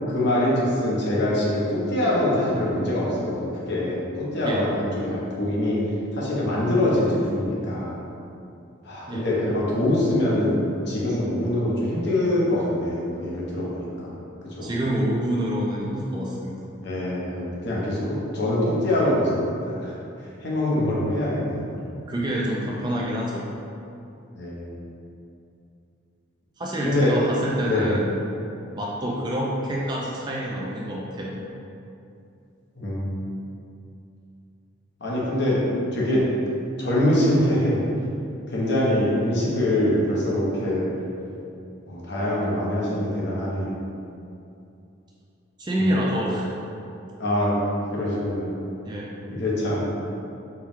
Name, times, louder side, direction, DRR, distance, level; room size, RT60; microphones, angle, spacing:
voice 1, 0.1-5.8 6.1-8.0 8.8-14.1 14.5-14.7 16.8-19.9 20.4-21.7 24.3-24.7 26.8-27.1 27.7-27.9 32.8-33.1 35.0-35.6 35.9-36.2 36.8-37.8 38.5-40.9 41.9-43.7 45.8-46.1 47.2-47.6 47.9-48.5 49.3-49.9, left 1 dB, 55° left, -6 dB, 0.9 m, -24 dB
voice 2, 14.6-16.5 22.0-23.4 26.6-28.1 28.8-31.3 45.6-46.5 48.8-49.1, equal, 20° right, -4 dB, 0.3 m, -27 dB
4.4 x 2.3 x 3.5 m, 2.7 s
head